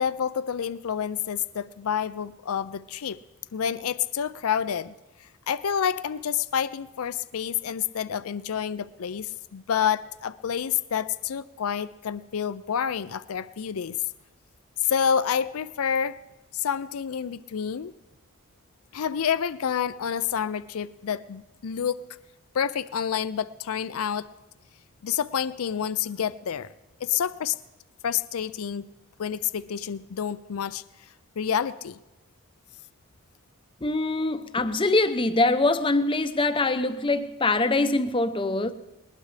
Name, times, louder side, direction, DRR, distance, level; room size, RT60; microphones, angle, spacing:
voice 1, 0.0-3.2 3.5-4.9 5.2-14.0 14.8-16.2 16.5-17.9 18.9-22.0 22.5-24.3 25.0-26.7 27.0-27.6 28.0-28.9 29.2-31.1 31.4-32.0, left 8 dB, 80° left, 0.5 m, -28 dB
voice 2, 33.8-38.7, left 2 dB, 25° left, 0.7 m, -23 dB
20.5 x 20.0 x 3.3 m
head